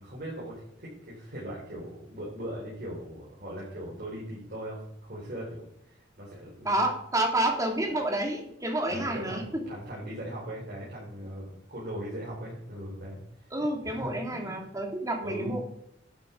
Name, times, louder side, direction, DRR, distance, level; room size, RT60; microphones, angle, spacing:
voice 1, 0.0-6.8 7.8-7.9 8.9-13.2 13.8-14.8 15.2-15.5, equal, 55° right, -6 dB, 3.9 m, -39 dB
voice 2, 6.6-9.4 13.5-15.6, right 1 dB, 20° right, 2 dB, 2.4 m, -29 dB
11.5 x 7.6 x 4.5 m, 0.77 s
head